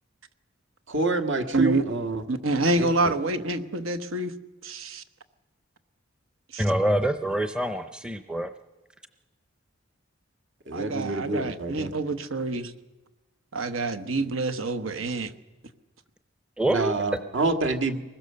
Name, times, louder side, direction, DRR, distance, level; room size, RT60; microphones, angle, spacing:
voice 1, 0.9-2.2 2.8-3.1 10.7-11.9 16.7-18.0, right 2 dB, 65° right, 6 dB, 1.7 m, -27 dB
voice 2, 1.5-1.8 2.3-4.3 4.6-5.0 6.5-6.6 10.7-12.7 13.5-15.3, right 2 dB, 80° right, 10 dB, 1.2 m, -27 dB
voice 3, 6.6-8.5 16.6-16.9, right 1 dB, 5° right, 9 dB, 0.6 m, -25 dB
23.5 x 20.5 x 6.8 m, 1.2 s
head